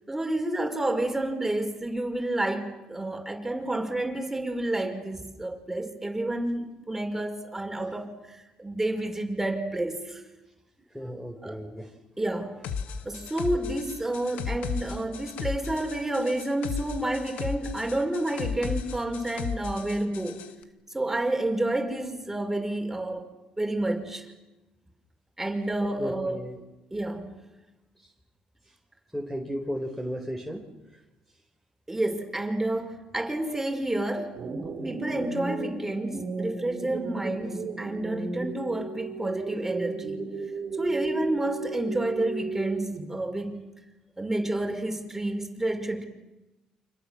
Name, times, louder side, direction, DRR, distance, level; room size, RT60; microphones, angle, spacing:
voice 1, 0.1-10.2 11.4-11.6 12.2-12.7 13.0-20.5 20.9-23.3 23.6-24.3 25.4-26.5 26.9-27.5 31.9-40.3 40.8-43.6 44.2-46.1, right 1 dB, 10° right, 5.7 m, -30 dB
voice 2, 10.9-11.9 26.0-26.6 29.1-30.6, equal, 5° left, 4.4 m, -34 dB
sound 1, 12.6-20.5, left 6 dB, 75° left, 1.9 m, -35 dB
sound 2, 34.3-43.3, right 3 dB, 55° right, 3.6 m, -35 dB
29.5 x 27.0 x 7.5 m
supercardioid pair, 70°, 3 cm